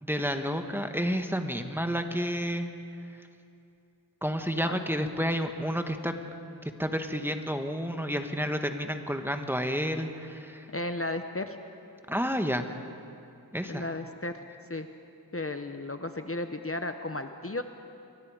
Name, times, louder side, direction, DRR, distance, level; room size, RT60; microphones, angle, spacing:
voice 1, 0.0-2.7 4.2-6.2 6.8-10.6 12.1-12.7 13.5-13.8, equal, 5° right, 6 dB, 1.5 m, -30 dB
voice 2, 10.7-11.6 13.7-14.3 14.7-14.9 15.3-17.6, left 2 dB, 35° left, 7 dB, 1.0 m, -34 dB
29.5 x 22.5 x 5.0 m, 2.7 s
wide cardioid pair, 45°, 38 cm